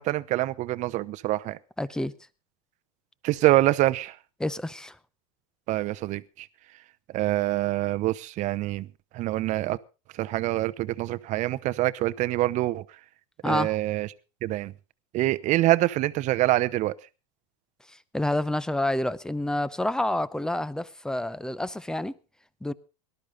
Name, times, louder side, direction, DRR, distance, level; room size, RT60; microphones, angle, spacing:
voice 1, 0.0-1.6 3.2-4.1 5.7-6.5 7.1-8.9 9.1-9.8 10.2-12.8 13.5-14.1 14.4-14.7 15.1-16.9, right 16 dB, 40° right, 0.8 m, -25 dB
voice 2, 1.8-2.1 4.4-5.0 13.4-13.7 17.9-22.1 22.6-22.7, left 1 dB, 5° left, 0.6 m, -28 dB
18.5 x 12.0 x 3.9 m
hypercardioid pair, 115°, 18 cm